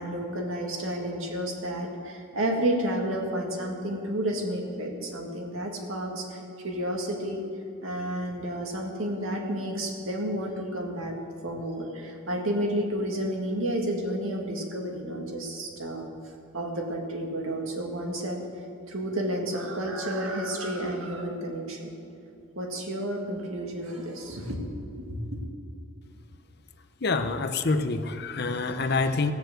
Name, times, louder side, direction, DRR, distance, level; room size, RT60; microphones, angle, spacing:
voice 1, 0.0-7.4 7.8-11.2 11.4-18.4 18.9-21.9 22.6-24.6 24.9-25.4, right 1 dB, 75° right, 1 dB, 2.1 m, -31 dB
voice 2, 27.0-29.3, left 3 dB, 50° left, 8 dB, 0.7 m, -26 dB
17.0 x 7.1 x 7.9 m, 2.6 s
head